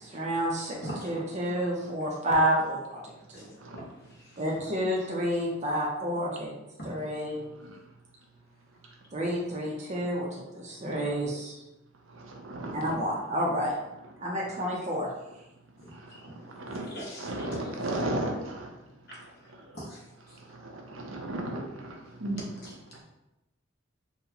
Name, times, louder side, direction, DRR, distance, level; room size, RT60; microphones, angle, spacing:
voice 1, 0.0-0.8 1.0-3.0 3.3-3.5 4.4-6.5 6.8-7.4 9.1-10.3 10.5-11.5 12.7-13.7 14.2-15.1, equal, 35° right, -3 dB, 0.6 m, -29 dB
voice 2, 0.8-1.2 3.3-3.4 3.7-3.9 6.8-6.9 16.1-16.2 16.9-17.8, equal, 55° left, -5 dB, 1.0 m, -39 dB
voice 3, 7.4-7.7 12.2-13.0 16.4-16.8 17.2-18.7 20.6-22.7, right 1 dB, 75° right, 1 dB, 0.6 m, -35 dB
3.9 x 2.1 x 2.7 m, 0.92 s
head